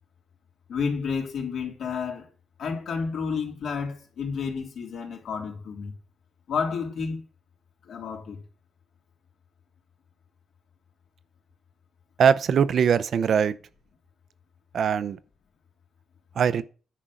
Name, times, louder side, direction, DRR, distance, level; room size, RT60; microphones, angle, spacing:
voice 1, 0.7-2.3 2.6-5.9 6.5-7.2 7.9-8.4, left 5 dB, 70° left, 3.1 m, -30 dB
voice 2, 12.2-13.6 14.7-15.2 16.4-16.6, right 7 dB, 55° right, 0.6 m, -21 dB
10.0 x 5.5 x 6.2 m
cardioid pair, 140°, 0 cm